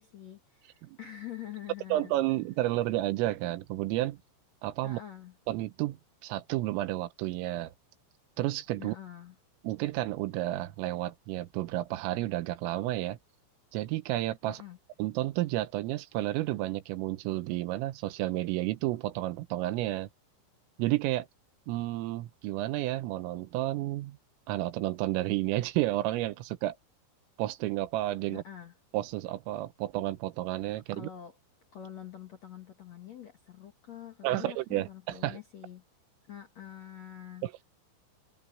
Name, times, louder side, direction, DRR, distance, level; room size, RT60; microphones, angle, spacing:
voice 1, 0.0-2.1 4.8-5.4 8.8-9.4 14.5-14.8 28.3-28.7 30.9-31.4 31.7-35.8 36.3-37.5, left 10 dB, 55° left, 2.0 m, -45 dB
voice 2, 1.9-4.2 4.6-5.0 5.5-7.7 8.4-9.0 9.7-13.2 13.7-14.6 15.0-20.1 20.8-21.3 21.7-24.2 24.5-26.8 27.4-28.4 28.9-31.1 34.2-35.4 37.4-37.5, right 16 dB, 90° right, 3.6 m, -31 dB
omnidirectional pair, 5.8 m